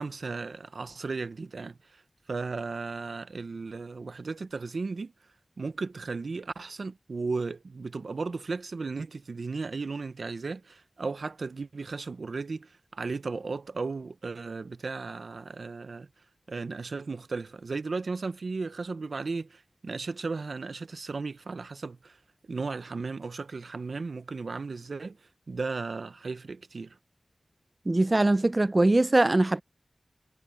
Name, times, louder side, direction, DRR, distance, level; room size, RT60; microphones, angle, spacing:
voice 1, 0.0-2.0 2.3-5.1 5.6-16.1 16.5-22.2 22.5-27.0, right 4 dB, 70° right, 0.8 m, -35 dB
voice 2, 27.9-29.6, right 2 dB, 30° right, 0.4 m, -22 dB
wide cardioid pair, 95°, 0 cm